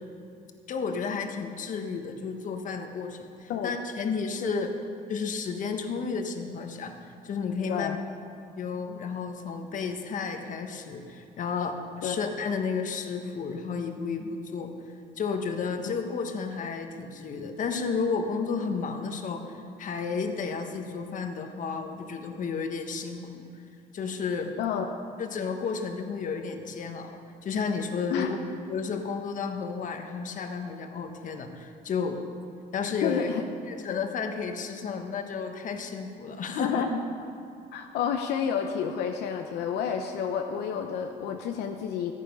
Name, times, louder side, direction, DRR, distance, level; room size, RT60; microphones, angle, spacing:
voice 1, 0.7-4.7 5.1-6.9 7.2-8.0 8.6-14.7 15.2-23.4 23.9-24.6 25.2-28.4 28.7-32.2 32.7-33.3 33.7-36.8, left 5 dB, 50° left, 5 dB, 1.3 m, -32 dB
voice 2, 7.7-8.0 12.0-12.2 15.8-16.0 24.6-24.9 28.1-28.3 33.0-33.4 36.5-37.0 37.7-42.1, left 8 dB, 80° left, 4 dB, 0.8 m, -30 dB
14.5 x 10.0 x 5.4 m, 2.5 s
cardioid pair, 110°, 17 cm